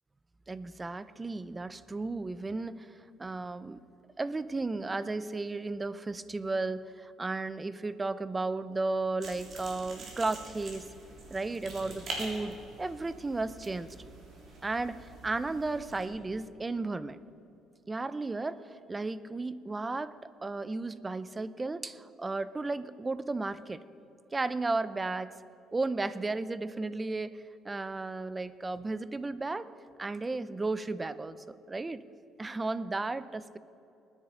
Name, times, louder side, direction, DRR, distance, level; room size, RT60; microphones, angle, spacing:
voice 1, 0.5-2.9 3.2-3.8 4.2-10.9 11.3-14.0 14.6-17.2 17.9-20.1 20.4-23.8 24.3-25.3 25.7-27.4 27.6-29.7 30.0-32.0 32.4-33.6, right 3 dB, 15° right, 15 dB, 0.4 m, -34 dB
sound 1, 9.2-16.1, right 2 dB, 45° right, 3.3 m, -45 dB
20.5 x 9.9 x 4.9 m, 2.8 s
cardioid pair, 130°, 0 cm